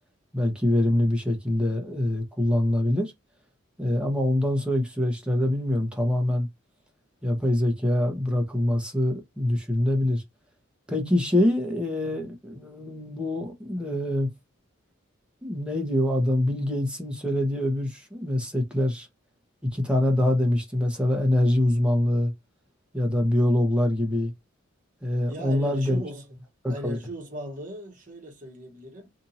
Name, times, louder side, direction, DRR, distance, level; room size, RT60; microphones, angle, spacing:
voice 1, 0.3-3.1 3.8-6.5 7.2-10.2 10.9-14.3 15.4-19.1 19.7-22.3 22.9-24.3 25.0-26.0 26.6-27.0, left 1 dB, 5° right, 0.9 m, -24 dB
voice 2, 25.3-26.4 26.7-29.1, right 1 dB, 40° right, 1.2 m, -38 dB
2.8 x 2.6 x 4.0 m
head